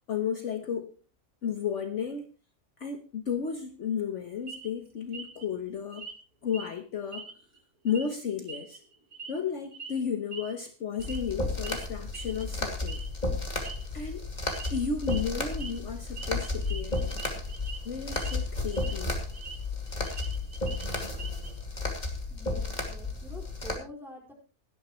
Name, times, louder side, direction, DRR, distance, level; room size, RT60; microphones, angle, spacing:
voice 1, 0.1-0.9 1.4-2.3 2.8-6.1 6.4-7.3 7.8-8.8 9.3-13.0 13.9-14.3 14.7-17.4 17.8-19.1, left 7 dB, 55° left, 1.3 m, -33 dB
sound 1, 4.5-4.7 5.1-5.4 5.9-6.2 6.5-6.7 7.1-7.6 7.9-8.1 8.5-9.4 9.7-9.9 10.3-10.5 11.0-11.3 11.6-11.9 12.1-12.4 12.9-13.1 13.4-13.8 14.4-14.7 15.0-15.2 15.5-15.7 16.2-17.8 18.1-18.4 18.7-19.6 19.9-21.5, right 5 dB, 75° right, 2.5 m, -43 dB
sound 2, 11.0-23.8, left 2 dB, 30° left, 2.7 m, -33 dB
voice 2, 22.3-24.3, equal, ahead, 4.8 m, -46 dB
17.5 x 12.5 x 3.1 m
omnidirectional pair, 1.5 m